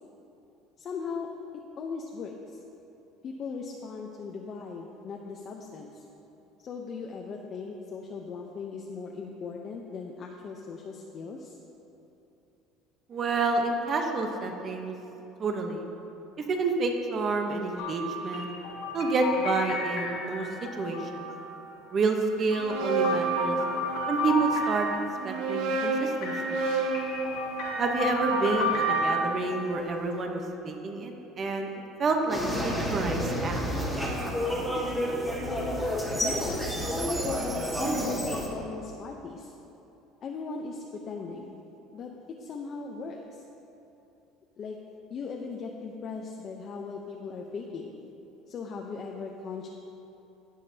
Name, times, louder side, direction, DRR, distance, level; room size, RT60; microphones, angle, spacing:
voice 1, 0.8-1.4 1.8-2.6 3.2-6.0 6.6-11.6 35.3-35.8 36.1-39.5 40.2-41.6 41.9-42.1 42.4-43.4 44.6-44.8 45.1-48.0 48.5-49.7, left 5 dB, 35° left, 0 dB, 0.7 m, -38 dB
voice 2, 13.1-14.9 15.4-15.9 16.4-18.5 18.9-20.5 20.8-21.3 21.9-23.6 24.1-24.9 25.2-26.6 27.8-31.7 32.0-33.6, right 3 dB, 35° right, 3 dB, 0.9 m, -29 dB
sound 1, 17.8-21.6 22.3-25.4 26.2-29.2, equal, 85° left, 1.4 m, -32 dB
sound 2, 22.4-24.3 25.1-29.2, right 3 dB, 80° right, 1.5 m, -31 dB
sound 3, 32.3-38.5, equal, 5° right, 1.6 m, -30 dB
17.5 x 7.3 x 2.8 m, 3.0 s
cardioid pair, 140°, 0 cm